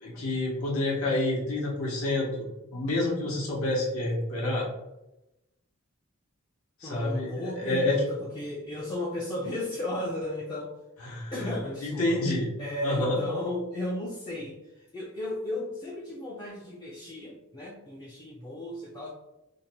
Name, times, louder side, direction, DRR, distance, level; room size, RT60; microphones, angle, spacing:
voice 1, 0.0-2.5 2.7-4.7 6.8-8.0 11.0-11.3 11.8-12.5 12.8-13.2, left 2 dB, 75° left, -4 dB, 0.7 m, -28 dB
voice 2, 6.8-10.7 11.3-12.2 12.6-19.1, left 1 dB, 20° left, -5 dB, 0.3 m, -35 dB
2.6 x 2.0 x 2.7 m, 0.93 s
head